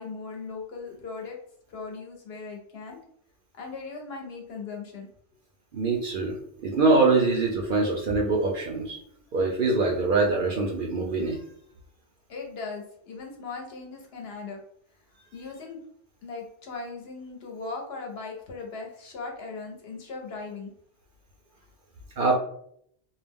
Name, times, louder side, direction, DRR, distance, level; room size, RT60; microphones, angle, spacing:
voice 1, 0.0-1.4 1.7-3.0 3.5-5.1 12.3-14.6 15.3-15.8 16.2-20.7, left 4 dB, 65° left, 1 dB, 0.8 m, -38 dB
voice 2, 5.7-6.4 6.6-9.0 9.3-11.4 22.2-22.4, right 3 dB, 60° right, 0 dB, 0.6 m, -23 dB
2.3 x 2.0 x 3.4 m, 0.67 s
omnidirectional pair, 1.2 m